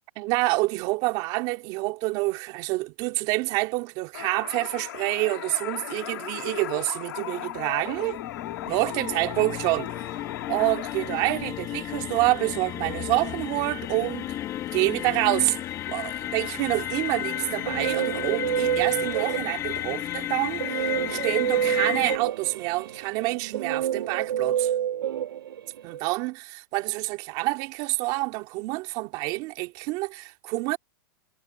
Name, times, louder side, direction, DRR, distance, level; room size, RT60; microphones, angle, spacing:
voice 1, 0.2-8.2 8.7-10.2 10.5-14.4 14.7-15.6 15.9-24.7 25.8-30.8, right 22 dB, 35° right, 2.2 m, -27 dB
sound 1, 4.1-11.3, left 13 dB, 65° left, 2.7 m, -37 dB
sound 2, 7.2-22.2, left 13 dB, 25° left, 1.6 m, -33 dB
Guitar, 17.3-19.8 20.6-26.0, right 10 dB, 80° right, 1.4 m, -28 dB
hypercardioid pair, 150°, 12 cm